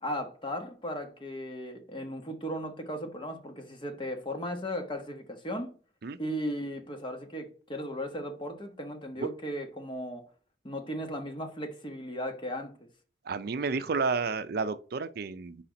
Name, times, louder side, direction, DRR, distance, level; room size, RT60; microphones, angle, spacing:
voice 1, 0.0-5.7 6.2-10.3 10.6-12.7, equal, 30° left, 1.2 m, -36 dB
voice 2, 13.2-15.6, right 4 dB, 60° right, 0.5 m, -31 dB
4.9 x 4.3 x 5.1 m
head